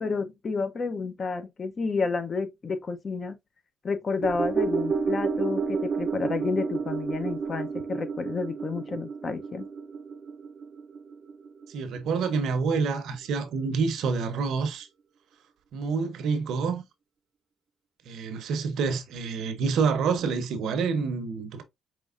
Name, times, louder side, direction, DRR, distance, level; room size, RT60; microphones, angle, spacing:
voice 1, 0.0-3.4 3.8-9.7, left 4 dB, 40° left, 0.7 m, -30 dB
sound 1, 4.2-12.7 13.0-13.1, right 5 dB, 50° right, 0.4 m, -31 dB
voice 2, 11.7-14.9 15.7-16.8 18.0-21.6, right 5 dB, 80° right, 0.7 m, -27 dB
5.1 x 3.1 x 2.4 m
cardioid pair, 90°, 0 cm